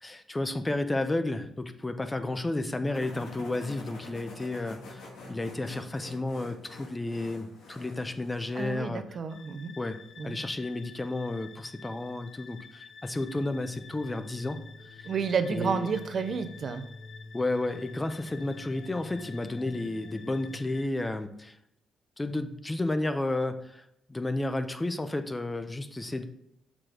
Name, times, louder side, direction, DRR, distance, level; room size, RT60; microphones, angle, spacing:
voice 1, 0.0-9.0 9.8-14.6 14.9-15.1 15.5-15.9 17.3-21.6 22.2-26.2, left 2 dB, 15° left, 9 dB, 0.6 m, -32 dB
sound 1, 2.9-8.7, left 2 dB, 90° left, 1.5 m, -47 dB
voice 2, 8.5-9.7 10.2-10.4 15.1-16.8, right 5 dB, 50° right, 10 dB, 0.5 m, -30 dB
sound 2, 9.3-20.9, left 4 dB, 60° left, 0.5 m, -48 dB
6.3 x 4.8 x 3.8 m, 0.76 s
cardioid pair, 90°, 0 cm